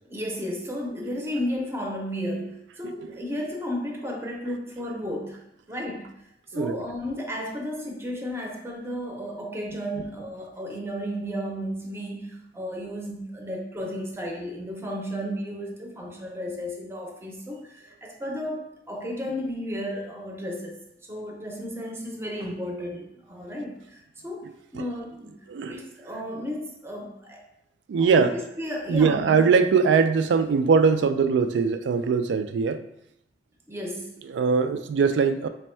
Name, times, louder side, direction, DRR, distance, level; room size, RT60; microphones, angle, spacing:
voice 1, 0.1-5.4 5.7-6.1 6.5-20.8 21.1-25.4 25.7-27.4 28.0-28.3 28.6-29.4 33.7-34.2, equal, 15° right, 0 dB, 0.5 m, -33 dB
voice 2, 25.5-25.8 27.9-28.3 28.9-32.8 34.3-35.5, right 5 dB, 85° right, 9 dB, 0.3 m, -21 dB
3.4 x 2.1 x 4.3 m, 0.81 s
head